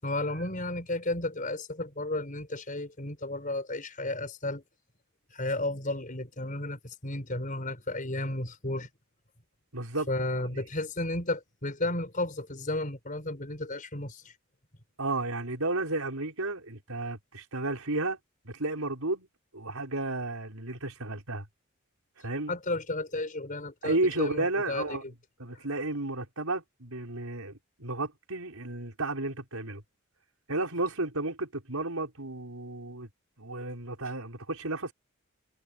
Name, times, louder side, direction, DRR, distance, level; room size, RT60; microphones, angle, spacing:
voice 1, 0.0-4.6 5.3-8.9 10.1-14.3 22.5-25.0, left 2 dB, 40° left, 5.4 m, -33 dB
voice 2, 9.7-10.5 15.0-18.2 18.4-19.3 19.5-21.5 22.2-22.6 23.8-25.0 25.4-29.8 30.5-33.1 33.4-34.9, right 2 dB, 90° right, 5.3 m, -32 dB
head